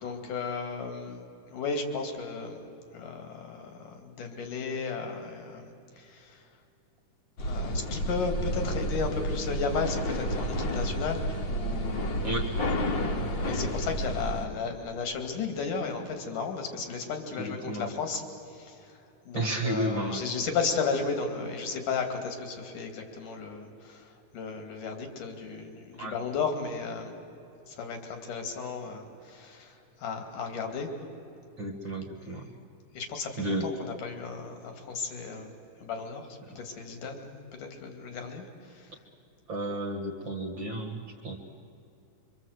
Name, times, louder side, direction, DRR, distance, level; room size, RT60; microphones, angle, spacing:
voice 1, 0.0-2.6 2.9-6.4 7.4-12.2 12.9-18.2 18.5-19.0 19.3-27.1 27.7-30.9 32.2-32.4 32.9-35.5 35.8-36.3 36.6-38.9, left 5 dB, 75° left, 5 dB, 3.9 m, -34 dB
sound 1, 7.4-14.5, equal, 40° left, 2.0 m, -30 dB
voice 2, 17.4-17.9 19.3-20.2 26.0-26.1 31.6-32.4 33.4-33.7 39.5-41.4, right 1 dB, 45° right, 2 dB, 2.0 m, -32 dB
25.5 x 25.0 x 8.0 m, 2.8 s
omnidirectional pair, 3.7 m